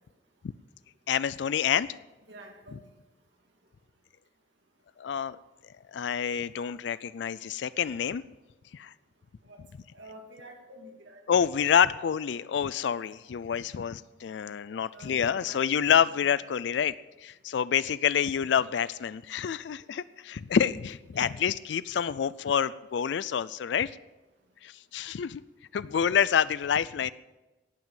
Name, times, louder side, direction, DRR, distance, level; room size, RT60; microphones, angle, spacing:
voice 1, 1.1-1.9 5.0-5.4 5.9-8.2 8.7-8.9 11.3-16.9 17.2-24.0 24.6-25.4 25.7-27.1, left 8 dB, 75° left, 18 dB, 0.4 m, -27 dB
voice 2, 2.3-2.9 9.5-9.6 9.9-11.5 14.9-15.6 16.1-16.3 21.1-21.4, right 1 dB, 85° right, 2 dB, 2.5 m, -48 dB
18.0 x 6.1 x 7.5 m, 1.1 s
head